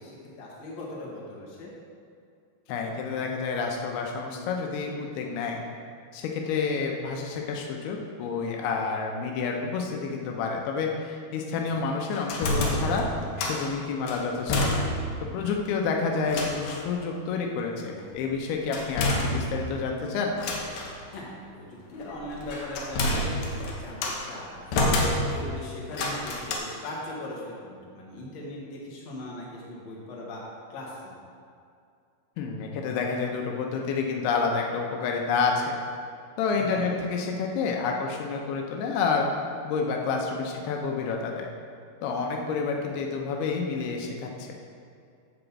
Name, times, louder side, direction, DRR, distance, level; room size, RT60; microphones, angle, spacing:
voice 1, 0.0-1.7 11.5-12.0 17.7-18.3 21.1-25.0 25.3-30.4 30.7-31.2 36.6-36.9 42.7-42.8, left 1 dB, 50° left, -4 dB, 2.5 m, -40 dB
voice 2, 2.7-5.6 6.1-13.1 13.4-14.9 15.3-20.4 32.4-35.8 36.4-39.3 39.6-41.5 42.0-44.5, left 5 dB, 85° left, 1 dB, 2.8 m, -29 dB
sound 1, 12.1-13.7 14.1-15.2 15.5-15.6 16.3-16.9 18.7-19.8 20.4-21.0 22.1-24.3 24.7-25.6 25.9-26.6, left 1 dB, 70° left, 2.5 m, -28 dB
10.5 x 4.0 x 7.3 m, 2.4 s
omnidirectional pair, 4.5 m